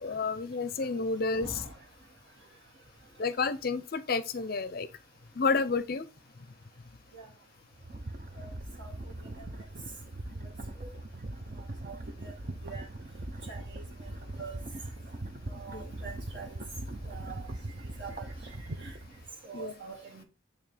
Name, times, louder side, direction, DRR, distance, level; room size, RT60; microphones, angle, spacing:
voice 1, 0.0-1.6 3.2-4.9 5.3-6.1 15.7-15.9 19.5-19.7, left 4 dB, 45° left, 0.5 m, -30 dB
voice 2, 1.4-1.7 7.1-7.3 8.4-8.5 8.8-8.9 10.8-10.9 11.8-12.0 12.2-12.3 12.6-12.8 13.5-13.8 14.4-14.5 15.5-16.5 17.1-17.5 18.0-18.3 18.8-18.9 19.4-20.2, right 4 dB, 60° right, 2.1 m, -44 dB
sound 1, 7.7-19.3, right 1 dB, 40° right, 0.6 m, -41 dB
9.0 x 3.2 x 3.3 m
head